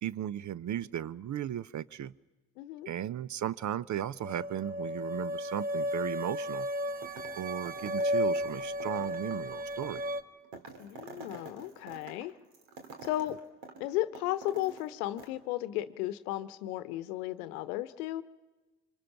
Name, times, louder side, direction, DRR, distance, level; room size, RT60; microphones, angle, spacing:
voice 1, 0.0-2.1 2.9-6.7 7.4-10.0, right 10 dB, 40° right, 21 dB, 0.7 m, -36 dB
voice 2, 2.6-2.9 10.8-12.3 13.0-13.4 13.8-18.2, left 14 dB, 80° left, 15 dB, 1.0 m, -34 dB
sound 1, 4.2-10.2, equal, 20° right, 1.2 m, -34 dB
sound 2, 7.0-7.4 7.7-14.9 15.2-15.3, right 4 dB, 75° right, 2.7 m, -48 dB
26.5 x 25.0 x 5.9 m, 1.2 s
hypercardioid pair, 55°, 44 cm